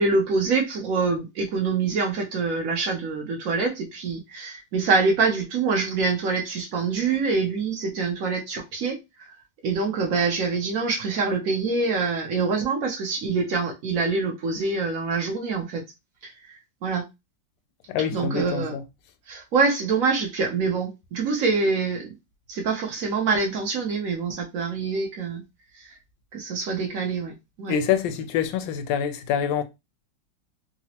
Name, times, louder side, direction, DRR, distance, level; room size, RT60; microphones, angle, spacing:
voice 1, 0.0-9.3 9.6-15.8 16.2-17.1 18.0-18.7 19.3-22.2 22.5-25.4 25.7-25.9 26.3-27.8, right 4 dB, 65° right, 0.8 m, -25 dB
voice 2, 17.9-18.8 27.7-29.6, left 8 dB, 80° left, 1.3 m, -25 dB
3.9 x 2.0 x 2.7 m
omnidirectional pair, 2.1 m